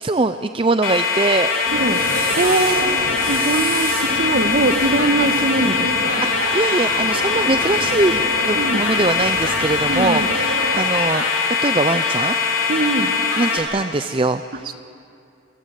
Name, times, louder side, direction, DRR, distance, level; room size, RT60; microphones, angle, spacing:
voice 1, 0.0-1.6 2.5-2.8 6.2-11.3 11.6-12.4 13.4-14.7, right 2 dB, 25° right, 10 dB, 0.5 m, -22 dB
sound 1, 0.8-13.6, left 5 dB, 75° left, 3.8 m, -21 dB
Speech, 1.3-5.5, left 2 dB, 60° left, 4.0 m, -35 dB
sound 2, 1.7-10.9, right 3 dB, 85° right, 2.9 m, -29 dB
voice 2, 2.4-3.0 3.3-6.2 8.6-8.8 9.9-10.3 12.7-13.1, right 2 dB, 45° right, 9 dB, 1.4 m, -21 dB
25.5 x 23.5 x 8.2 m, 2.6 s
head